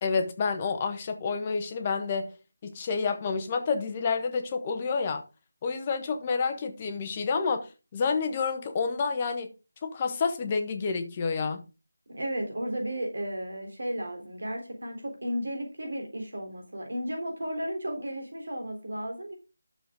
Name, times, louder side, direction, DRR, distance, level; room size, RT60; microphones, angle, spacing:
voice 1, 0.0-2.3 2.6-5.2 5.6-7.7 7.9-9.5 9.8-11.6, left 5 dB, 25° left, 1.2 m, -29 dB
voice 2, 12.1-19.3, equal, 65° right, 3.5 m, -34 dB
11.5 x 6.9 x 3.7 m
figure-of-eight pair, 160°, 0 cm